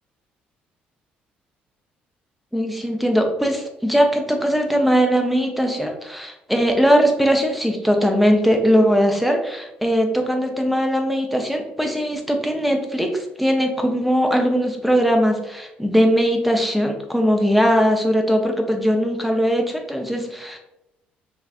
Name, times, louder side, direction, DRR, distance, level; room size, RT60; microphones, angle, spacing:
voice 1, 2.5-20.6, equal, ahead, 3 dB, 0.6 m, -20 dB
3.4 x 2.4 x 2.4 m, 0.89 s
hypercardioid pair, 50°, 5 cm